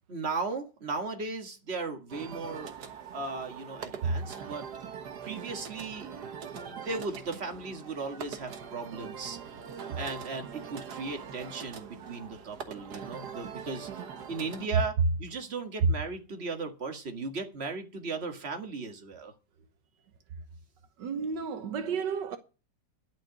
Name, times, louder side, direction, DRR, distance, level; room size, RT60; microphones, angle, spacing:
voice 1, 0.1-2.7 3.1-4.7 5.2-6.1 6.5-9.6 10.0-14.0 14.3-14.9 15.2-19.3, right 4 dB, 35° right, 2.0 m, -36 dB
sound 1, 2.1-14.7, right 7 dB, 65° right, 1.8 m, -42 dB
voice 2, 21.0-22.4, right 4 dB, 85° right, 1.8 m, -29 dB
11.0 x 5.9 x 9.0 m
omnidirectional pair, 1.9 m